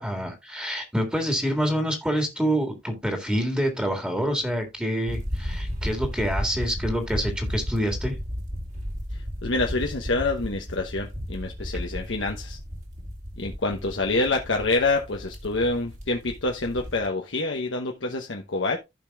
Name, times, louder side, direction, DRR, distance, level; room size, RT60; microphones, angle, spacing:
voice 1, 0.0-8.2, equal, 5° right, 1.9 m, -27 dB
sound 1, 5.1-17.1, equal, 40° right, 2.4 m, -34 dB
voice 2, 9.4-12.6 13.4-18.8, left 3 dB, 70° left, 1.0 m, -27 dB
15.0 x 5.2 x 2.3 m
head